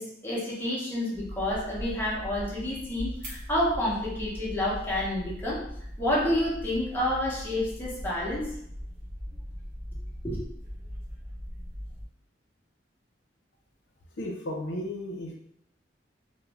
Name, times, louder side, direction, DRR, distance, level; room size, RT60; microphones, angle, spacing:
voice 1, 0.0-5.6 6.0-8.5 10.2-10.4, left 1 dB, 10° left, -6 dB, 0.6 m, -29 dB
sound 1, 1.1-12.0, equal, 50° right, 0.8 m, -40 dB
voice 2, 14.2-15.3, left 1 dB, 80° left, 0 dB, 0.6 m, -34 dB
2.5 x 2.0 x 3.1 m, 0.74 s
head